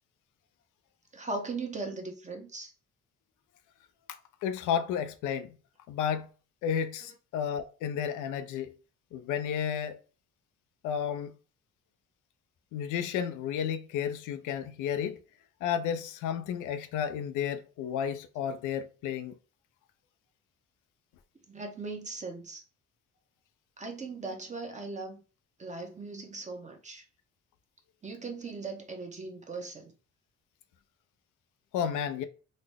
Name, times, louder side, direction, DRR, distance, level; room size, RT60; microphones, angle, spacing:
voice 1, 1.1-2.7 21.5-22.6 23.8-25.2 25.6-27.0 28.0-29.9, right 3 dB, 25° right, 0.9 m, -39 dB
voice 2, 4.4-5.5 5.9-6.3 6.6-8.7 9.1-10.0 10.8-11.3 12.7-15.2 15.6-19.3 31.7-32.3, left 8 dB, 90° left, 0.5 m, -32 dB
3.9 x 2.1 x 3.4 m
cardioid pair, 90°, 30 cm